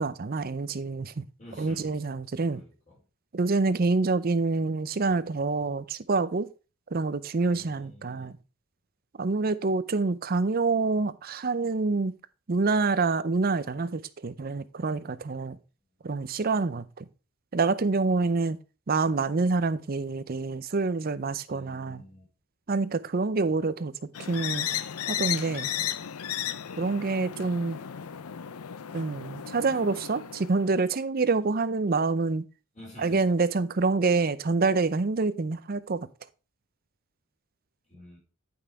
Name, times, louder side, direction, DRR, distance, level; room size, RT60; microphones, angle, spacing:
voice 1, 0.0-1.2 1.6-2.6 3.3-6.5 6.9-8.4 9.2-12.1 12.5-15.6 16.0-17.0 17.5-18.6 18.9-22.0 22.7-23.9 24.3-24.7 25.1-25.7 26.8-27.8 28.9-32.4 33.0-36.1, right 3 dB, 40° right, 0.5 m, -27 dB
voice 2, 1.4-2.0 2.5-3.0 7.5-8.3 21.5-22.2 32.7-33.3 37.8-38.2, left 1 dB, 35° left, 4.5 m, -49 dB
sound 1, 24.1-30.9, left 10 dB, 80° left, 0.5 m, -34 dB
8.8 x 5.6 x 4.6 m
head